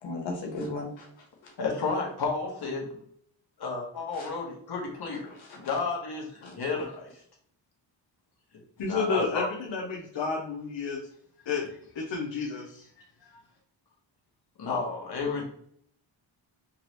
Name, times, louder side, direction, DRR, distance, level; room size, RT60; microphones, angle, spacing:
voice 1, 0.0-1.1 4.2-4.3 5.5-5.6 6.4-6.5, left 2 dB, 90° left, -1 dB, 1.3 m, -35 dB
voice 2, 1.6-3.0 3.6-5.3 5.6-7.1 8.9-9.5 14.6-15.4, left 4 dB, 55° left, -1 dB, 1.3 m, -32 dB
voice 3, 8.8-11.0 11.4-11.7 11.9-12.9 13.2-13.4, left 4 dB, 70° left, -2 dB, 1.0 m, -31 dB
3.8 x 3.1 x 3.0 m, 0.65 s
cardioid pair, 90°, 45 cm